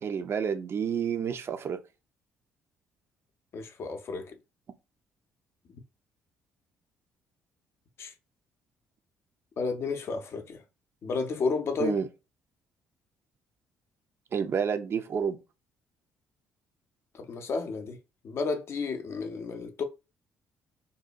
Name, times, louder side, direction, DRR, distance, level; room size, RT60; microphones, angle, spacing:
voice 1, 0.0-1.8 11.8-12.1 14.3-15.4, right 7 dB, 45° right, 0.4 m, -29 dB
voice 2, 3.5-4.4 5.7-5.8 8.0-8.1 9.6-10.6 11.0-12.0 17.1-18.0 18.2-19.8, left 4 dB, 45° left, 0.5 m, -32 dB
2.7 x 2.1 x 2.4 m
figure-of-eight pair, 45°, 6 cm